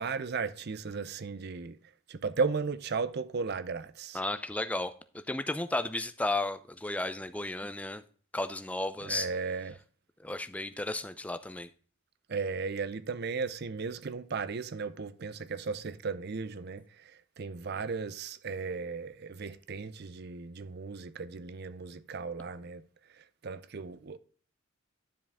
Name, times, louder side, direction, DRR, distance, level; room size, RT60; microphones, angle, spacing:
voice 1, 0.0-1.8 2.1-4.2 9.0-9.8 12.3-16.8 17.4-22.8 23.4-24.2, right 4 dB, 50° right, 0.5 m, -35 dB
voice 2, 4.1-8.0 8.3-9.3 10.2-11.7, left 2 dB, 5° left, 0.4 m, -34 dB
10.0 x 4.8 x 3.5 m
head